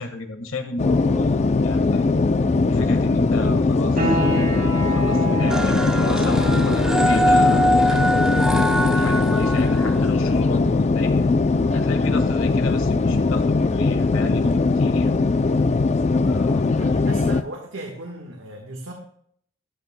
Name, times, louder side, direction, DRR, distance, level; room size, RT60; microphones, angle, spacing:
voice 1, 0.0-2.0 2.7-8.4 8.9-11.2 11.7-15.1 16.3-16.9, left 2 dB, 80° left, 5 dB, 1.5 m, -32 dB
sound 1, 0.8-17.4, left 3 dB, 35° left, 0.4 m, -20 dB
sound 2, 4.0-14.5, right 1 dB, 45° right, 2.6 m, -32 dB
sound 3, 5.5-10.4, equal, 5° right, 0.7 m, -23 dB
voice 2, 16.7-18.9, right 2 dB, 70° right, 1 dB, 1.4 m, -37 dB
13.0 x 12.5 x 2.2 m, 0.65 s
head